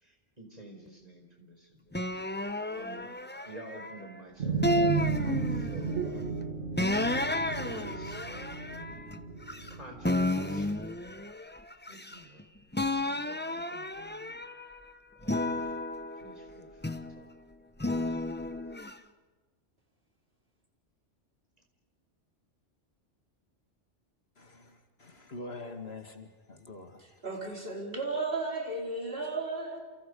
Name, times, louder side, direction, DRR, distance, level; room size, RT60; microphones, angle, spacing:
voice 1, 0.0-1.9 2.7-3.1 3.4-6.3 7.6-9.2 9.7-10.9 11.9-12.5 13.0-14.3 15.2-15.8 16.2-17.3 18.0-18.2, right 1 dB, 30° right, 2 dB, 5.1 m, -50 dB
sound 1, 1.9-4.1 4.6-6.0 6.8-9.7 10.0-12.4 12.7-14.7 15.2-17.2 17.8-18.9, left 1 dB, 10° left, 0.9 m, -32 dB
sound 2, 4.4-11.0, right 5 dB, 70° right, 2.4 m, -34 dB
voice 2, 24.4-27.0, left 2 dB, 55° left, 5 dB, 2.4 m, -45 dB
voice 3, 27.0-29.8, right 3 dB, 50° right, 0 dB, 5.1 m, -34 dB
29.5 x 28.5 x 5.5 m, 1.3 s
omnidirectional pair, 1.2 m